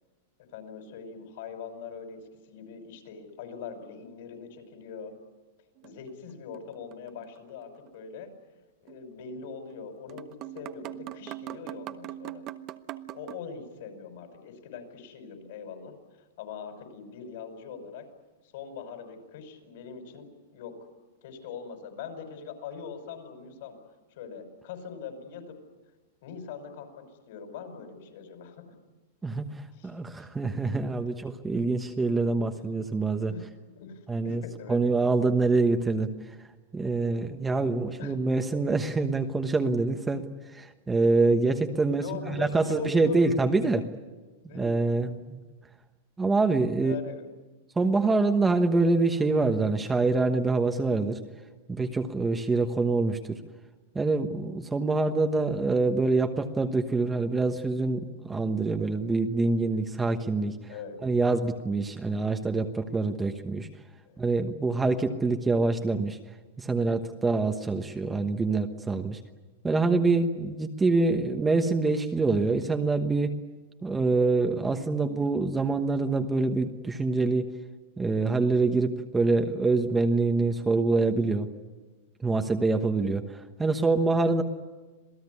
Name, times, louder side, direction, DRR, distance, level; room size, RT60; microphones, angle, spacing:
voice 1, 0.4-5.2 5.8-8.3 8.8-12.4 13.1-18.1 18.5-20.8 21.2-23.8 24.2-25.6 26.2-28.7 29.8-30.3 31.5-31.6 33.3-33.5 33.7-34.8 38.0-38.2 41.9-43.4 44.4-45.0 46.8-47.4 60.7-61.0 64.1-64.2 67.0-67.1, left 6 dB, 60° left, 6 dB, 5.8 m, -42 dB
sound 1, 5.8-7.1 7.4-7.5 8.9-9.1 9.7-9.8 10.1-13.4, right 14 dB, 35° right, 1.0 m, -41 dB
voice 2, 29.2-33.3 34.1-34.4 34.7-36.1 36.7-40.2 40.5-43.8 44.5-45.4 46.2-46.9 47.8-51.2 51.7-53.4 53.9-60.6 61.0-63.7 64.2-66.2 66.6-69.2 69.6-73.3 73.8-77.5 78.0-81.5 82.2-83.2 83.6-84.4, right 3 dB, 10° right, 6 dB, 1.2 m, -25 dB
27.0 x 17.5 x 9.8 m, 1.2 s
supercardioid pair, 150°, 0 cm